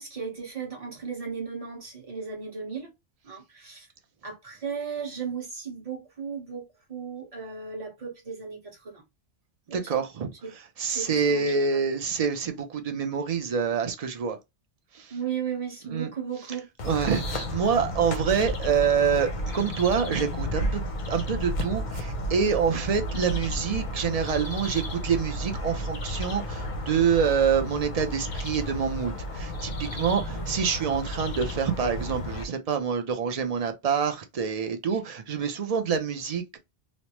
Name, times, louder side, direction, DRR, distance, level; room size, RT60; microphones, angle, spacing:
voice 1, 0.0-2.9 3.2-3.9 4.2-6.6 6.9-9.0 9.7-10.0 10.4-10.5 10.9-11.7 15.1-16.7 30.3-30.4, right 6 dB, 35° right, 1.1 m, -35 dB
voice 2, 9.7-14.4 14.9-15.2 15.8-16.1 16.8-36.6, right 6 dB, 55° right, 0.4 m, -26 dB
sound 1, 16.8-32.4, equal, 50° left, 0.7 m, -33 dB
3.1 x 2.0 x 2.9 m
omnidirectional pair, 1.2 m